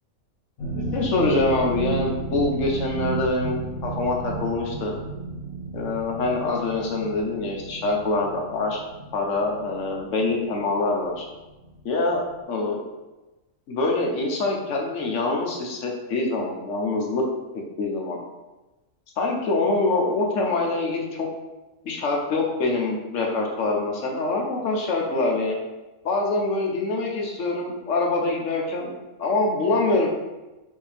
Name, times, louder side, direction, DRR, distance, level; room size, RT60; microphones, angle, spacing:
sound 1, 0.6-11.3 11.6-11.9 12.3-12.4, right 3 dB, 90° left, 1.3 m, -33 dB
voice 1, 0.9-4.9 5.7-8.8 9.1-11.3 11.8-12.8 13.7-17.3 17.8-18.2 19.2-21.3 21.8-25.6 26.0-28.9 29.2-30.1, left 3 dB, 65° left, 0 dB, 1.1 m, -25 dB
5.5 x 2.6 x 3.4 m, 1.1 s
omnidirectional pair, 1.4 m